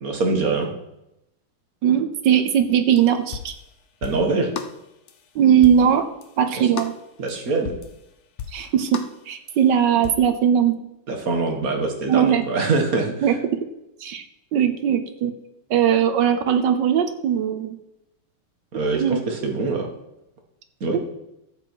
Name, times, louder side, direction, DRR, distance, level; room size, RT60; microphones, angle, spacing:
voice 1, 0.0-0.7 4.0-4.5 6.5-6.6 7.2-7.7 11.1-13.1 18.7-19.9 20.8-21.0, right 3 dB, 45° right, 2 dB, 2.0 m, -23 dB
voice 2, 1.8-3.5 5.3-6.1 6.4-6.9 8.5-9.0 9.3-10.7 12.1-12.4 13.2-13.6 14.0-14.2 14.5-15.3 15.7-17.8 18.9-19.2 20.9-21.1, right 9 dB, 65° right, 9 dB, 1.3 m, -19 dB
sound 1, 3.0-3.1 3.3-3.6 4.0-4.2 4.6-4.8 5.1-5.2 5.6-5.9 6.2-6.3 6.8-6.9 7.3-7.4 7.6-8.0 8.4-8.6 8.9-9.1 9.5-9.6 10.0-10.1, left 7 dB, 85° left, 0.6 m, -33 dB
13.0 x 8.1 x 4.7 m, 0.86 s
omnidirectional pair, 2.4 m